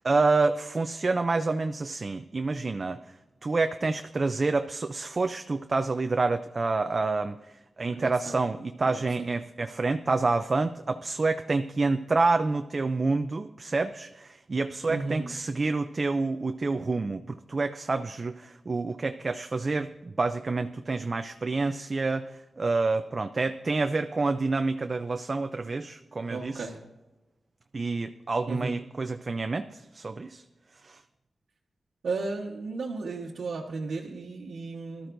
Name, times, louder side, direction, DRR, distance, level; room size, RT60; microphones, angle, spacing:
voice 1, 0.0-3.0 3.4-7.4 7.8-26.7 27.7-30.4 30.8-31.0, right 3 dB, 40° right, 8 dB, 0.4 m, -28 dB
voice 2, 7.8-8.4 8.9-9.3 14.9-15.3 26.3-26.8 28.5-28.7 32.0-35.1, right 3 dB, 80° right, -3 dB, 1.2 m, -34 dB
18.5 x 13.0 x 2.6 m, 1.0 s
wide cardioid pair, 90°, 0 cm